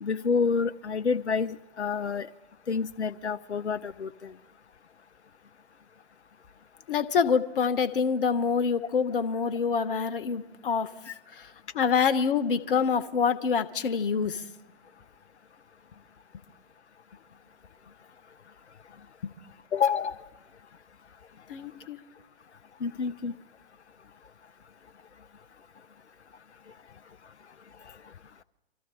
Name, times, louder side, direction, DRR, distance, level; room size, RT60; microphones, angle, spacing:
voice 1, 0.0-2.3 2.7-4.3 11.1-11.2 19.7-20.2 22.8-23.3, left 5 dB, 90° left, 9 dB, 0.5 m, -28 dB
voice 2, 6.9-10.9 11.3-14.4 19.2-19.3 21.5-22.0, left 6 dB, 55° left, 10 dB, 1.1 m, -26 dB
25.0 x 14.0 x 3.8 m, 1.0 s
figure-of-eight pair, 120°, 33 cm